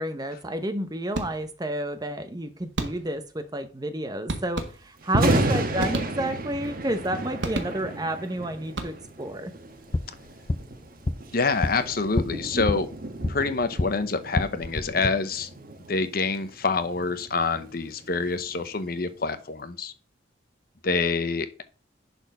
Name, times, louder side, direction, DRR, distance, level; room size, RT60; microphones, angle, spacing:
voice 1, 0.0-9.5, right 1 dB, 20° right, 10 dB, 0.8 m, -30 dB
sound 1, 1.1-1.7 2.8-3.3 4.3-5.1 5.8-6.6 7.4-8.1 8.6-9.3, right 2 dB, 80° right, 1.6 m, -33 dB
Thunder, 5.0-19.1, right 1 dB, 50° right, 1.3 m, -32 dB
sound 2, 9.7-13.9 14.3-15.1, left 2 dB, 25° left, 0.4 m, -30 dB
voice 2, 11.3-12.9 13.3-15.5 15.9-19.9 20.8-21.6, left 4 dB, 55° left, 11 dB, 0.9 m, -26 dB
11.0 x 4.3 x 5.4 m, 0.37 s
head